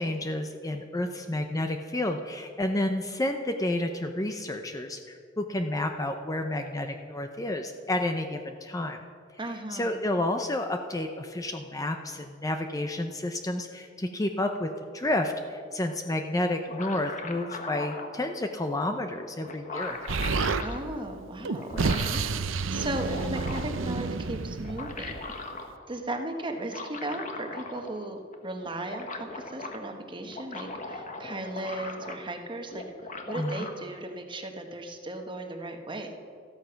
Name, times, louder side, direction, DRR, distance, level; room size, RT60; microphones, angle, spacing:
voice 1, 0.0-9.0 9.4-20.0 33.4-33.7, left 1 dB, 20° left, 6 dB, 0.6 m, -30 dB
voice 2, 9.4-10.0 20.6-25.2 25.9-32.8 33.3-36.1, right 2 dB, 25° right, 4 dB, 1.3 m, -36 dB
sound 1, 16.4-18.1 19.1-19.2 19.4-20.8 21.5-22.3 22.8-23.8 24.5-25.7 26.6-28.0 28.3-28.4 28.6-29.8 30.2-32.4 32.7-33.7, left 3 dB, 40° left, 1.4 m, -39 dB
Explosion, 20.1-20.7 21.4-25.3, right 4 dB, 85° right, 0.7 m, -30 dB
13.5 x 13.0 x 5.8 m, 2.2 s
head